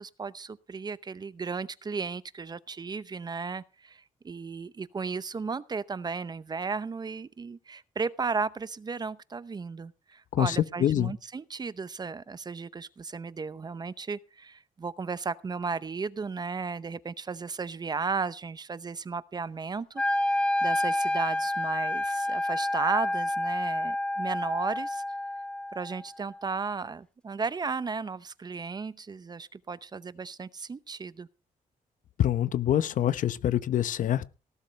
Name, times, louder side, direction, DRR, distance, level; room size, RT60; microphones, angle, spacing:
voice 1, 0.0-20.0 20.3-25.0 25.7-31.3, right 4 dB, 30° right, 0.7 m, -35 dB
voice 2, 10.3-11.1 32.2-34.3, left 11 dB, 65° left, 0.9 m, -25 dB
Wind instrument woodwind instrument, 20.0-26.0, left 1 dB, 5° left, 2.0 m, -29 dB
18.5 x 12.0 x 3.3 m
cardioid pair, 110°, 14 cm